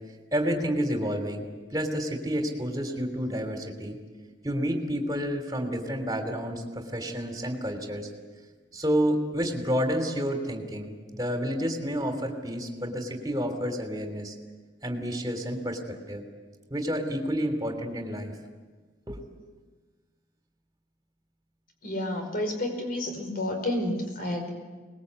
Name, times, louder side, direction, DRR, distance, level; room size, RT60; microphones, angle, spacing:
voice 1, 0.3-4.0 4.4-8.1 8.7-14.3 14.8-16.2 16.7-18.3 19.1-19.2, equal, 20° right, 4 dB, 3.3 m, -30 dB
voice 2, 21.8-24.5, left 1 dB, 50° left, 4 dB, 5.1 m, -30 dB
24.0 x 20.5 x 8.3 m, 1.4 s
head